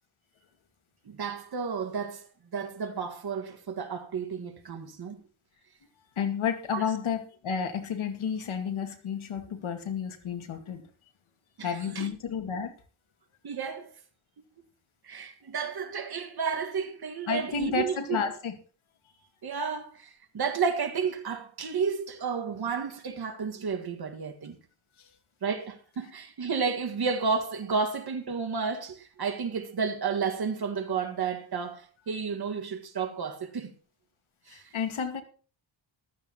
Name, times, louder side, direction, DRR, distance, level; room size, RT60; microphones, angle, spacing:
voice 1, 1.1-2.3 2.5-5.2 6.7-6.9 11.6-12.1 13.4-13.9 15.0-18.2 19.4-24.6 25.4-33.7 34.5-34.7, right 5 dB, 50° right, 1.9 m, -32 dB
voice 2, 6.2-10.9 11.6-12.7 17.3-18.6 25.0-25.1 34.5-35.2, left 6 dB, 90° left, 2.3 m, -31 dB
14.5 x 13.0 x 3.0 m
wide cardioid pair, 140°, 47 cm